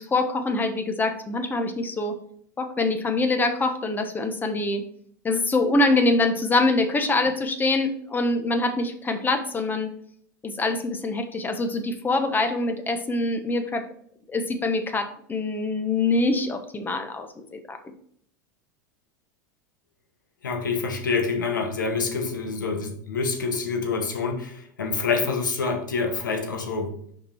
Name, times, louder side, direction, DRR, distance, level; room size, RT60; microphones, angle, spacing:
voice 1, 0.0-2.1 2.6-4.8 5.2-9.9 10.4-13.8 14.3-17.8, left 2 dB, 20° left, 7 dB, 1.0 m, -24 dB
voice 2, 20.4-27.1, left 4 dB, 85° left, 4 dB, 1.2 m, -27 dB
5.7 x 4.8 x 4.3 m, 0.65 s
hypercardioid pair, 90°, 10 cm